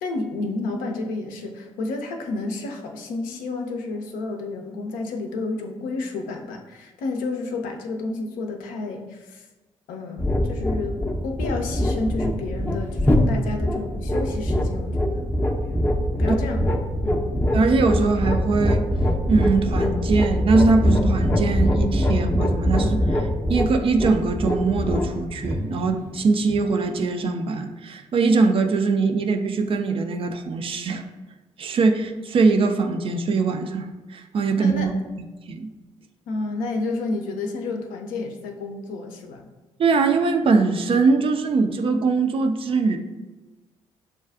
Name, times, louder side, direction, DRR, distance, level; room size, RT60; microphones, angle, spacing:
voice 1, 0.0-9.5 9.9-15.4 16.2-16.7 17.0-17.4 34.5-34.9 36.3-39.5, left 3 dB, 60° left, 3 dB, 0.5 m, -31 dB
sound 1, 10.2-26.6, equal, 10° left, 0.6 m, -23 dB
voice 2, 17.5-18.8 19.3-31.0 31.6-34.9 35.5-35.7 39.8-43.0, right 4 dB, 35° right, 5 dB, 0.4 m, -22 dB
6.8 x 2.3 x 2.3 m, 1.2 s
figure-of-eight pair, 40°, 16 cm